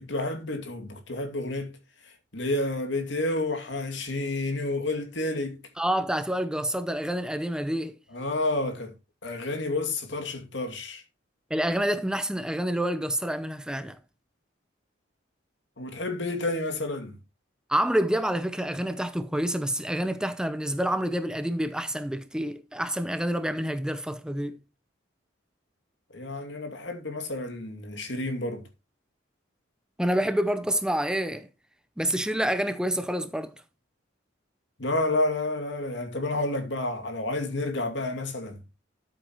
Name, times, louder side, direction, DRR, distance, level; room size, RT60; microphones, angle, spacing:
voice 1, 0.1-1.8 2.3-5.6 8.1-8.9 9.2-11.0 15.8-17.2 26.1-28.6 34.8-38.6, left 2 dB, 65° left, 2.5 m, -30 dB
voice 2, 5.8-8.0 11.5-14.0 17.7-24.6 30.0-31.5 32.0-33.5, right 1 dB, 5° right, 0.6 m, -28 dB
13.0 x 7.9 x 3.0 m
head